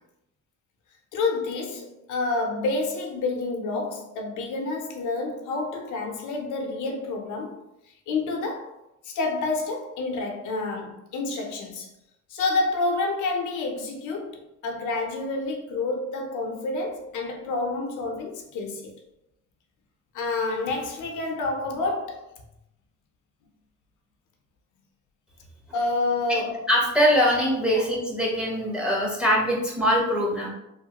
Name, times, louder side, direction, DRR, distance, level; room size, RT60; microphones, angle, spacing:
voice 1, 1.1-7.6 8.1-8.7 9.0-11.9 12.3-18.9 20.1-22.2 25.7-26.6 27.7-27.9, left 3 dB, 80° left, 0.6 m, -28 dB
voice 2, 26.7-30.5, equal, 5° right, 0.9 m, -22 dB
3.1 x 2.1 x 2.8 m
cardioid pair, 90°, 30 cm